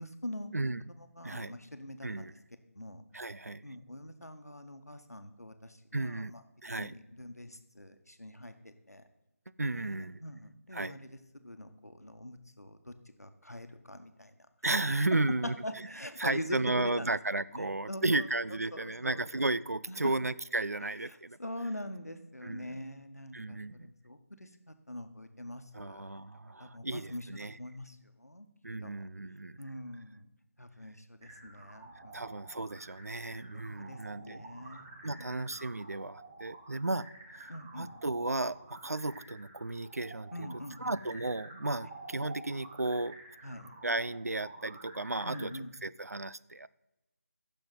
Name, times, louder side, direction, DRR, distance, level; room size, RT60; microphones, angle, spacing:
voice 1, 0.0-0.5 1.0-2.4 2.7-3.0 3.6-6.4 6.8-9.0 9.7-14.3 15.4-17.1 17.5-19.3 19.9-20.1 21.1-26.1 26.6-27.3 27.6-28.5 28.8-29.0 29.6-30.3 30.6-32.3 33.5-34.9 35.2-35.5 37.5-37.9 40.3-41.0 43.4-43.7 45.2-45.7, left 1 dB, 85° left, 8 dB, 1.2 m, -44 dB
voice 2, 1.2-1.6 2.0-2.3 3.1-3.6 5.9-6.3 6.6-7.0 9.6-10.2 10.7-11.0 14.6-15.5 16.2-21.4 22.4-22.8 23.3-23.9 25.7-27.6 28.6-29.6 32.1-34.4 35.0-40.5 40.8-43.1 43.8-46.7, right 2 dB, 80° right, 17 dB, 0.4 m, -34 dB
sound 1, 31.2-45.6, right 3 dB, 5° right, 0.3 m, -51 dB
15.5 x 6.9 x 3.9 m, 0.98 s
figure-of-eight pair, 160°, 8 cm